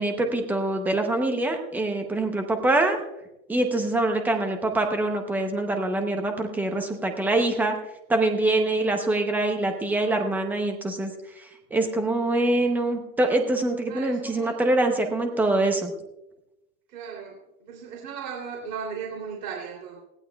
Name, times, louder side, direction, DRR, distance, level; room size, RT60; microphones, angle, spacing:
voice 1, 0.0-3.0 3.5-7.8 8.1-15.9, right 2 dB, 5° right, 5 dB, 0.7 m, -24 dB
voice 2, 13.9-14.5 16.9-20.0, right 6 dB, 80° right, 0 dB, 3.1 m, -37 dB
20.0 x 15.5 x 2.3 m, 0.94 s
supercardioid pair, 155°, 48 cm